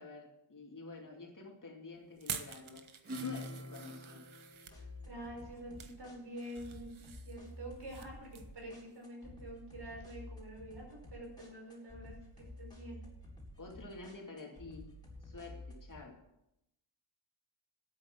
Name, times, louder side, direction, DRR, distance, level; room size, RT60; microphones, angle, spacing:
voice 1, 0.0-4.3 13.6-14.9 15.2-16.1, left 3 dB, 40° left, 0 dB, 2.7 m, -49 dB
sound 1, 2.2-4.8 5.4-6.0 6.4-8.1 8.3-8.6 9.0-9.1, right 7 dB, 80° right, 1.2 m, -47 dB
Acoustic guitar / Strum, 3.0-6.0, left 2 dB, 30° right, 2.6 m, -46 dB
sound 2, 4.7-16.0, left 1 dB, 10° left, 3.8 m, -52 dB
voice 2, 4.7-13.0, right 1 dB, 55° right, 0 dB, 5.4 m, -47 dB
11.5 x 8.7 x 7.4 m, 0.86 s
wide cardioid pair, 140°, 47 cm